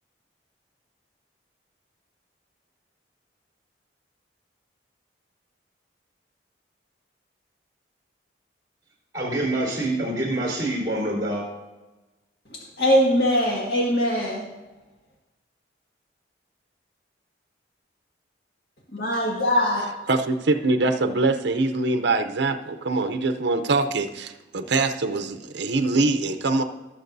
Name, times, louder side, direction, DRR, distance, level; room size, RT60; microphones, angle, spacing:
voice 1, 9.1-11.4, right 1 dB, 20° right, -2 dB, 3.8 m, -26 dB
voice 2, 12.8-14.5 18.9-19.9, equal, 60° left, -4 dB, 1.9 m, -21 dB
voice 3, 20.1-26.6, right 3 dB, 75° right, 7 dB, 0.6 m, -23 dB
18.5 x 6.8 x 2.7 m, 1.1 s
head